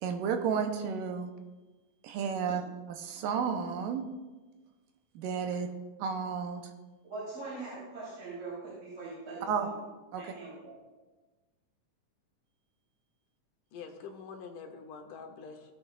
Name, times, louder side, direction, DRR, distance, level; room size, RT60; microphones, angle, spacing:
voice 1, 0.0-1.3 2.0-2.6 3.0-4.1 5.2-5.7 6.0-6.6 9.5-9.7 10.1-10.2, right 6 dB, 80° right, 2.4 m, -32 dB
voice 2, 7.0-9.8 10.1-10.8, right 3 dB, 40° right, 4.3 m, -42 dB
voice 3, 13.7-15.7, left 5 dB, 70° left, 2.3 m, -45 dB
17.5 x 7.9 x 2.4 m
omnidirectional pair, 4.1 m